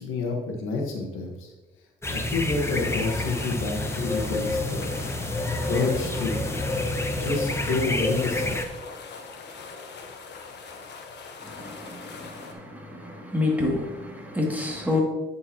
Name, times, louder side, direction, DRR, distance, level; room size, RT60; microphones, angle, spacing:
voice 1, 0.0-1.5 2.1-4.9 5.7-6.5 7.2-8.6, left 3 dB, 85° left, 1.5 m, -29 dB
sound 1, 2.0-8.6, left 2 dB, 15° left, 0.9 m, -28 dB
sound 2, 2.6-12.5, left 4 dB, 60° left, 1.3 m, -42 dB
voice 2, 11.4-15.0, left 2 dB, 10° right, 2.5 m, -29 dB
8.7 x 7.0 x 3.0 m
cardioid pair, 90°, 20 cm